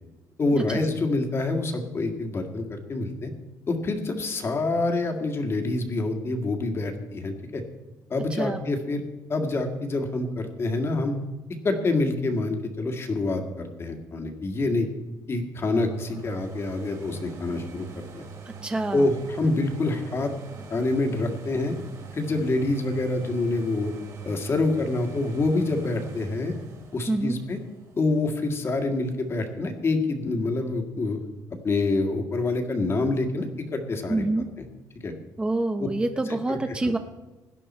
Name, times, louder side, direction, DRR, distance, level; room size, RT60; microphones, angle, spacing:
voice 1, 0.4-3.3 3.7-7.6 8.1-9.0 9.3-11.1 11.6-14.9 15.3-17.9 18.1-18.2 18.9-20.3 20.7-21.7 22.1-23.9 24.2-26.5 26.9-27.6 28.0-31.2 31.5-33.5 33.7-34.2 34.6-34.7 35.0-35.1 36.3-36.6 36.8-36.9, left 2 dB, 35° left, 4 dB, 1.9 m, -26 dB
voice 2, 8.3-8.6 18.5-19.1 27.1-27.4 34.1-34.5 35.4-37.0, right 2 dB, 15° right, 7 dB, 0.7 m, -27 dB
sound 1, 15.7-29.4 29.9-30.0, right 6 dB, 50° right, 2.4 m, -43 dB
17.0 x 10.5 x 4.3 m, 1.1 s
cardioid pair, 120°, 7 cm